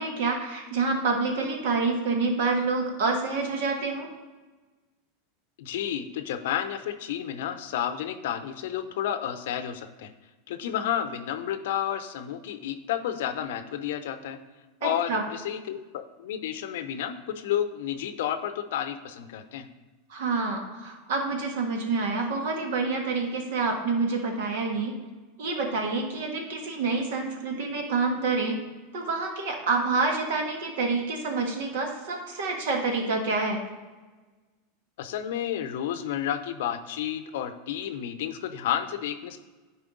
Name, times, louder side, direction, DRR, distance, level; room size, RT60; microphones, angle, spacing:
voice 1, 0.0-4.1 14.8-15.3 20.1-25.0 25.4-28.6 28.9-33.6, right 3 dB, 70° right, 2 dB, 1.6 m, -27 dB
voice 2, 5.6-10.1 10.5-14.4 14.8-19.7 35.0-39.4, left 10 dB, 70° left, 10 dB, 0.6 m, -31 dB
10.0 x 4.4 x 3.8 m, 1.3 s
hypercardioid pair, 95°, 0 cm